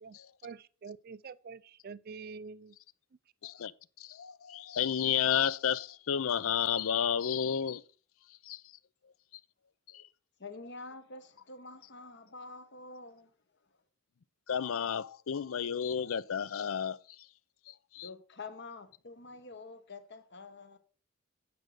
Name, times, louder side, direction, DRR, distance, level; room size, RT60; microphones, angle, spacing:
voice 1, 0.0-2.8, right 5 dB, 45° right, 0.4 m, -46 dB
voice 2, 4.0-7.8 8.4-8.6 9.9-10.0 14.5-17.3 17.7-18.1, left 8 dB, 75° left, 0.5 m, -32 dB
voice 3, 10.4-13.3 18.0-20.8, left 3 dB, 55° left, 1.1 m, -47 dB
8.7 x 5.1 x 6.2 m
head